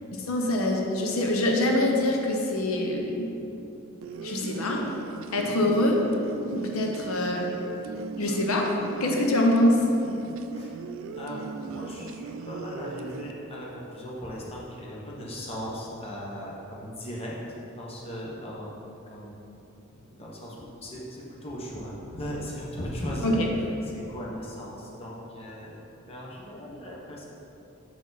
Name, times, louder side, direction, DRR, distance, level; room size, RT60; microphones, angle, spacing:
voice 1, 0.1-3.3 4.2-4.8 5.3-6.0 6.5-7.5 8.2-8.7 9.0-9.8 23.2-23.5, left 1 dB, 85° left, 0 dB, 0.8 m, -24 dB
sound 1, 4.0-13.3, right 5 dB, 65° right, 0.3 m, -38 dB
voice 2, 11.2-18.7 19.1-19.4 19.9-23.4 23.8-27.2, equal, 30° left, -4 dB, 1.0 m, -38 dB
7.5 x 4.7 x 4.0 m, 2.9 s
head